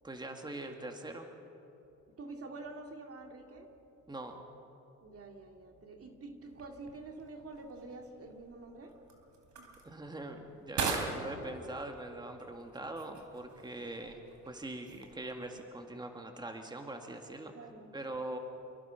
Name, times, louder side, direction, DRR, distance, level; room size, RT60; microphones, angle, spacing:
voice 1, 0.0-1.3 4.1-4.4 9.8-17.6 17.9-18.4, right 2 dB, 15° right, 4 dB, 2.1 m, -42 dB
voice 2, 2.2-3.7 5.0-8.9 17.5-17.9, right 3 dB, 50° right, 4 dB, 2.5 m, -47 dB
sound 1, 6.4-15.6, right 4 dB, 70° right, 3.6 m, -43 dB
27.5 x 22.0 x 5.9 m, 2.9 s
cardioid pair, 90°, 30 cm